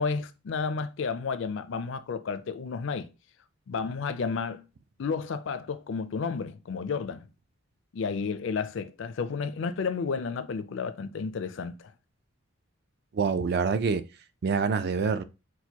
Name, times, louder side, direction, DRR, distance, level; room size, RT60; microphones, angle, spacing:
voice 1, 0.0-3.1 3.7-4.6 5.0-7.3 7.9-11.9, left 5 dB, 60° left, 0.4 m, -32 dB
voice 2, 13.1-14.0 14.4-15.2, right 5 dB, 50° right, 0.3 m, -26 dB
6.2 x 2.2 x 2.8 m
head